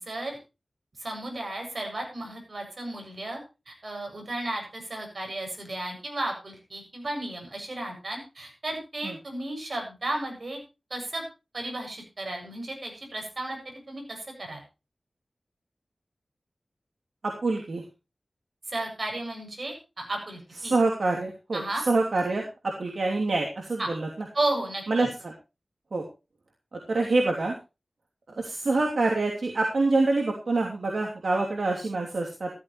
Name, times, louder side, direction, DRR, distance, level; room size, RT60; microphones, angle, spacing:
voice 1, 0.1-0.4 1.0-3.4 3.7-10.6 10.9-11.2 11.5-14.6 18.7-20.7 21.5-21.9 23.8-23.9 24.3-25.1, right 2 dB, 60° right, 2 dB, 7.5 m, -34 dB
voice 2, 17.2-17.8 20.6-24.3 24.9-25.3 25.9-26.1 26.7-27.5 28.3-32.5, right 3 dB, 80° right, 0 dB, 3.0 m, -26 dB
14.5 x 14.5 x 3.2 m, 0.29 s
wide cardioid pair, 80°, 0 cm